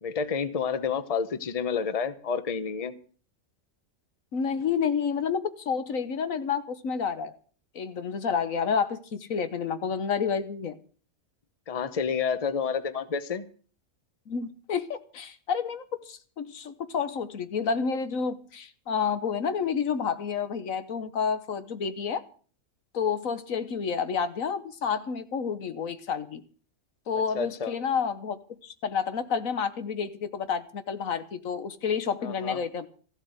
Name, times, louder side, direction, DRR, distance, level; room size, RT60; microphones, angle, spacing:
voice 1, 0.0-2.9 11.7-13.4 27.3-27.7 32.2-32.6, left 6 dB, 30° left, 13 dB, 0.9 m, -29 dB
voice 2, 4.3-7.3 7.7-10.8 14.3-22.2 22.9-26.4 27.1-32.9, left 6 dB, 80° left, 11 dB, 1.6 m, -29 dB
15.0 x 8.0 x 8.0 m, 0.42 s
omnidirectional pair, 1.4 m